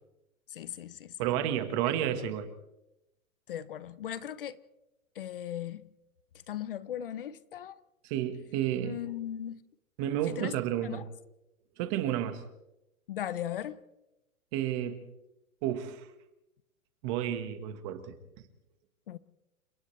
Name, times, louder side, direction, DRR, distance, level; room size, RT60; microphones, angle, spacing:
voice 1, 0.5-1.1 2.2-2.3 3.5-4.6 5.2-5.8 6.5-7.8 8.8-9.6 10.3-10.5 10.8-11.1 13.1-13.8 19.1-19.2, left 11 dB, 40° left, 0.7 m, -38 dB
voice 2, 1.2-2.5 8.0-9.0 10.0-11.0 11.8-12.4 14.5-15.0 15.6-16.1 17.0-18.1, right 11 dB, 20° right, 1.5 m, -31 dB
30.0 x 27.0 x 3.3 m
hypercardioid pair, 170°, 42 cm